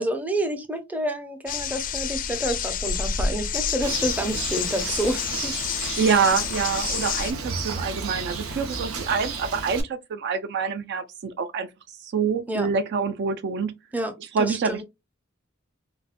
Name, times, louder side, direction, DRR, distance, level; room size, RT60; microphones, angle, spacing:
voice 1, 0.0-5.5 12.5-12.7 13.9-14.8, right 1 dB, 10° right, 0.6 m, -29 dB
sound 1, 1.5-7.3, left 7 dB, 40° left, 0.4 m, -29 dB
Bird, 3.8-9.8, right 4 dB, 85° right, 0.7 m, -33 dB
voice 2, 6.0-11.7 12.0-13.7 14.3-14.8, right 5 dB, 55° right, 0.4 m, -26 dB
3.9 x 2.1 x 2.4 m
head